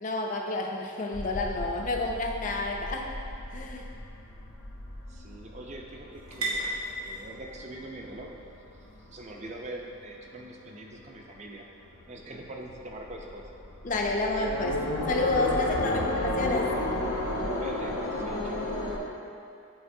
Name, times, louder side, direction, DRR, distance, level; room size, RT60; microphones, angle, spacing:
voice 1, 0.0-3.1 3.5-3.9 13.8-14.8 15.1-16.7, left 2 dB, 35° left, 1 dB, 0.5 m, -30 dB
sound 1, 1.1-10.0 10.4-11.1 11.4-11.5 11.8-19.0, left 1 dB, 85° left, 0.7 m, -33 dB
sound 2, 3.3-10.6, right 2 dB, 85° right, 1.2 m, -41 dB
voice 2, 5.1-11.7 12.1-13.5 17.6-18.7, right 1 dB, 30° right, 0 dB, 0.5 m, -43 dB
8.6 x 4.2 x 2.7 m, 2.6 s
head